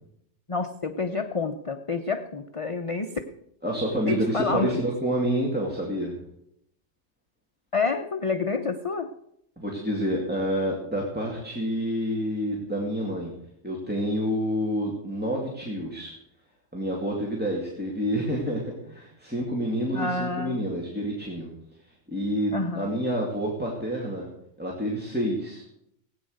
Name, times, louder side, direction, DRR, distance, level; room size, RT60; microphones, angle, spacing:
voice 1, 0.5-3.2 4.1-4.7 7.7-9.1 19.9-20.7 22.5-22.9, left 4 dB, 30° left, 7 dB, 0.7 m, -28 dB
voice 2, 3.6-6.2 9.6-13.3 13.6-16.1 16.7-21.5 21.8-24.3 24.6-25.6, equal, 10° right, -2 dB, 2.5 m, -28 dB
17.5 x 9.3 x 6.6 m, 0.76 s
omnidirectional pair, 1.3 m